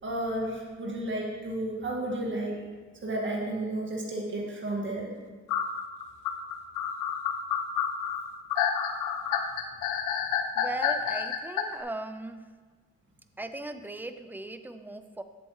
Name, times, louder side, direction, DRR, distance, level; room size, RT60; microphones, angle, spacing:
voice 1, 0.0-2.6 3.0-5.1, right 1 dB, 40° right, -2 dB, 1.9 m, -32 dB
sound 1, 5.5-11.6, left 8 dB, 90° left, 0.7 m, -29 dB
voice 2, 10.6-12.4 13.4-15.2, right 2 dB, 5° right, 9 dB, 0.4 m, -38 dB
7.9 x 7.4 x 3.1 m, 1.4 s
cardioid pair, 90°, 30 cm